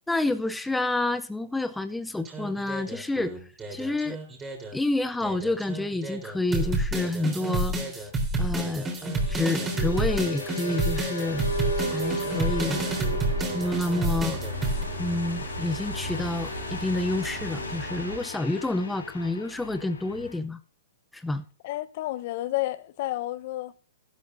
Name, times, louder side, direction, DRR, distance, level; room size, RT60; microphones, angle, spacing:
voice 1, 0.1-3.3 3.7-4.2 4.7-8.1 8.4-11.5 11.9-12.8 13.5-14.4 15.0-20.6 21.1-21.4, left 2 dB, 5° left, 0.6 m, -29 dB
sound 1, 2.2-4.7 5.2-14.8, right 2 dB, 20° right, 3.7 m, -29 dB
sound 2, 7.9-20.4, left 1 dB, 80° left, 3.2 m, -35 dB
sound 3, 11.3-18.2, right 6 dB, 70° right, 1.8 m, -38 dB
voice 2, 21.6-23.7, left 16 dB, 50° left, 0.8 m, -31 dB
13.5 x 12.5 x 2.6 m
hypercardioid pair, 120°, 0 cm